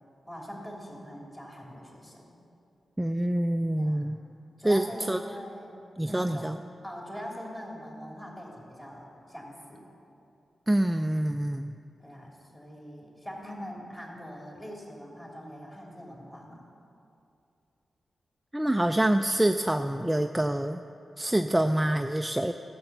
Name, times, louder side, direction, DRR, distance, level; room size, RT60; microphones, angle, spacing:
voice 1, 0.3-2.4 3.8-4.2 4.6-5.8 6.1-6.5 6.8-9.8 12.0-16.7, equal, 15° left, -2 dB, 2.8 m, -42 dB
voice 2, 3.0-4.2 4.6-5.2 6.0-6.6 10.7-11.7 18.5-20.8 21.2-22.5, right 1 dB, 10° right, 6 dB, 0.3 m, -26 dB
13.5 x 7.1 x 6.7 m, 2.6 s
wide cardioid pair, 100°, 0 cm